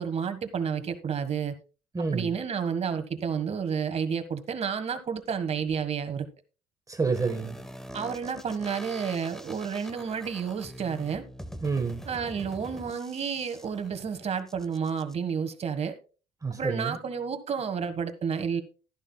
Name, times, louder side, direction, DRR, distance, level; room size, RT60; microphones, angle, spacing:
voice 1, 0.0-1.5 2.1-6.3 7.9-11.2 12.1-15.9 16.5-18.6, right 6 dB, 40° right, 1.5 m, -30 dB
voice 2, 1.9-2.3 6.9-7.6 11.6-12.0 16.4-17.0, right 4 dB, 20° right, 1.3 m, -28 dB
sound 1, 7.1-15.1, equal, ahead, 1.1 m, -44 dB
12.5 x 11.0 x 2.2 m
cardioid pair, 110°, 17 cm